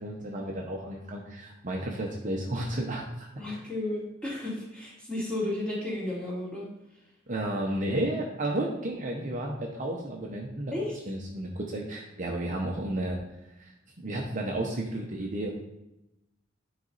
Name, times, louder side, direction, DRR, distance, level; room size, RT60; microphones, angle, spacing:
voice 1, 0.0-3.3 7.3-10.7 11.1-13.2 13.6-13.7 14.0-15.5, right 1 dB, 40° right, 0 dB, 0.8 m, -32 dB
voice 2, 3.3-6.7 10.7-10.9, left 1 dB, 5° left, -8 dB, 2.7 m, -33 dB
9.2 x 4.1 x 4.0 m, 0.89 s
head